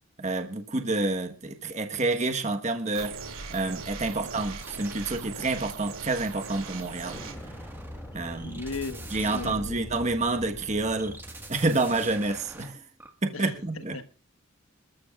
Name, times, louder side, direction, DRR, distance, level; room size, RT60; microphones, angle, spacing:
voice 1, 0.2-3.2 3.5-7.3 8.1-8.6 9.1-11.2 11.5-12.8 13.2-13.9, right 2 dB, 30° right, 1.3 m, -28 dB
sound 1, 2.9-7.3, right 4 dB, 80° right, 2.5 m, -40 dB
sound 2, 4.6-10.2 11.0-13.1, right 2 dB, 10° right, 1.6 m, -47 dB
Explosion, 7.0-12.5, equal, 10° left, 2.2 m, -43 dB
voice 2, 8.4-9.7 13.3-14.0, left 3 dB, 80° left, 1.2 m, -37 dB
27.0 x 13.5 x 2.4 m
head